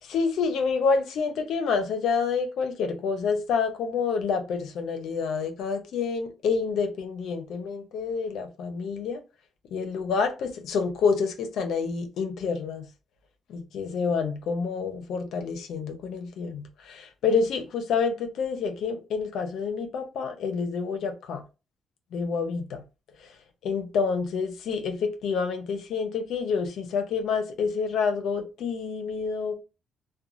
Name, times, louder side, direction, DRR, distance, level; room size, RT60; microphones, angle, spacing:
voice 1, 0.0-9.2 9.7-12.9 13.5-21.4 22.1-22.8 23.6-29.6, left 5 dB, 75° left, 0.6 m, -28 dB
2.9 x 2.1 x 2.5 m
cardioid pair, 90°, 0 cm